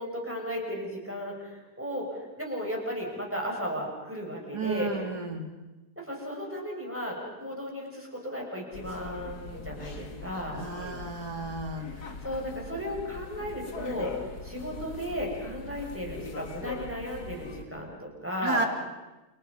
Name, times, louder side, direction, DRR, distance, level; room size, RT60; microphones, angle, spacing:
voice 1, 0.0-4.9 6.0-10.6 12.2-18.7, equal, 5° right, -1 dB, 6.9 m, -35 dB
voice 2, 4.5-5.5 10.5-11.9 18.4-18.7, right 3 dB, 75° right, 4 dB, 3.5 m, -32 dB
sound 1, 8.7-17.6, left 4 dB, 70° left, 2.7 m, -41 dB
30.0 x 29.5 x 5.6 m, 1.1 s
omnidirectional pair, 1.8 m